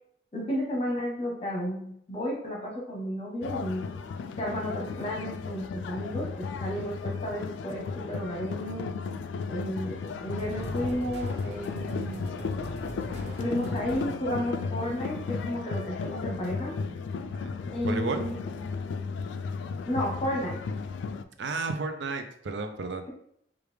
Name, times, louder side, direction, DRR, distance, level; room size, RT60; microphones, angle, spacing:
voice 1, 0.3-3.8 4.4-8.9 9.5-12.2 13.4-16.7 17.7-18.4 19.9-20.6, equal, 30° left, -2 dB, 1.0 m, -32 dB
sound 1, 3.4-21.2, left 5 dB, 85° left, 0.3 m, -35 dB
sound 2, 10.3-14.5, right 1 dB, 60° right, 0.9 m, -41 dB
voice 2, 17.8-18.2 21.4-23.0, right 3 dB, 80° right, 7 dB, 0.5 m, -32 dB
4.8 x 2.4 x 3.3 m, 0.70 s
head